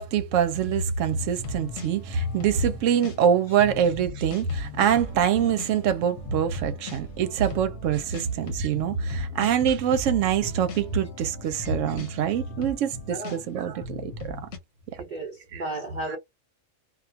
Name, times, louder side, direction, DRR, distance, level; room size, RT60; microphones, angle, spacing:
voice 1, 0.0-14.4 15.5-15.6 16.1-16.2, right 8 dB, 75° right, 0.9 m, -25 dB
sound 1, 1.1-14.6, left 1 dB, 65° left, 1.0 m, -38 dB
voice 2, 13.1-13.4 15.0-16.2, right 2 dB, 50° right, 0.6 m, -34 dB
2.4 x 2.3 x 2.6 m
omnidirectional pair, 1.3 m